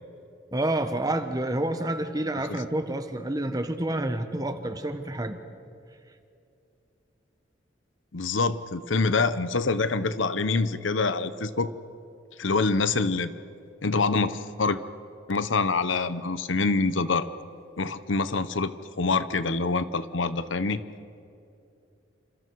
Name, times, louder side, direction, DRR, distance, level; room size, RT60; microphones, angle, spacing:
voice 1, 0.5-5.4, right 1 dB, 20° right, 8 dB, 1.2 m, -28 dB
voice 2, 8.1-11.7 12.4-13.3 13.8-14.8 15.3-17.3 17.8-20.8, left 3 dB, 85° left, 13 dB, 0.9 m, -26 dB
29.0 x 27.0 x 4.7 m, 2.6 s
head